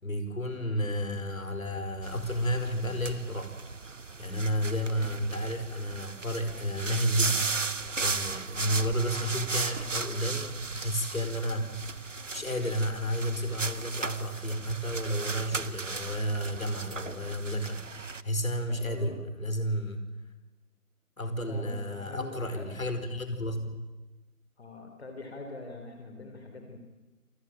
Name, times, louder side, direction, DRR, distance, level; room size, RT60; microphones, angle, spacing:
voice 1, 0.0-3.5 4.2-7.5 8.0-12.1 12.3-17.9 18.2-20.1 21.2-23.8, equal, 60° left, 8 dB, 4.8 m, -31 dB
sound 1, 2.0-18.2, right 4 dB, 55° right, 1.2 m, -36 dB
voice 2, 18.7-19.2 21.5-22.7 24.6-26.8, left 2 dB, 45° left, 4 dB, 3.8 m, -43 dB
27.0 x 19.0 x 9.0 m, 1.2 s
figure-of-eight pair, 160°, 45 cm